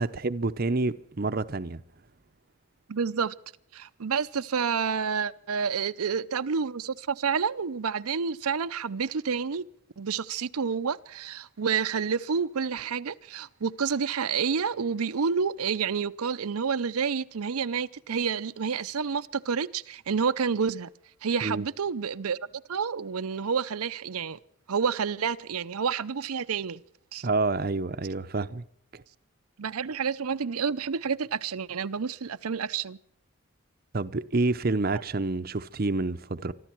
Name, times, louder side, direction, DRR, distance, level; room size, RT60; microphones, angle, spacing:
voice 1, 0.0-1.8 21.4-21.6 27.2-28.6 28.9-29.0 33.9-36.5, right 3 dB, 40° right, 0.7 m, -28 dB
voice 2, 2.9-3.3 3.7-9.6 10.0-20.9 21.2-22.4 22.7-24.4 24.7-26.8 27.1-27.3 29.6-33.0, right 6 dB, 85° right, 0.6 m, -29 dB
24.5 x 13.0 x 4.5 m
head